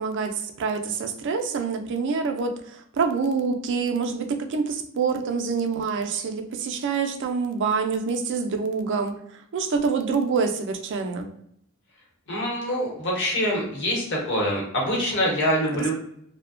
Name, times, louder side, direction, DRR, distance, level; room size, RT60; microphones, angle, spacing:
voice 1, 0.0-11.3, right 5 dB, 60° right, 5 dB, 0.4 m, -26 dB
voice 2, 12.3-15.9, equal, 55° left, -3 dB, 0.9 m, -25 dB
2.7 x 2.1 x 2.4 m, 0.71 s
head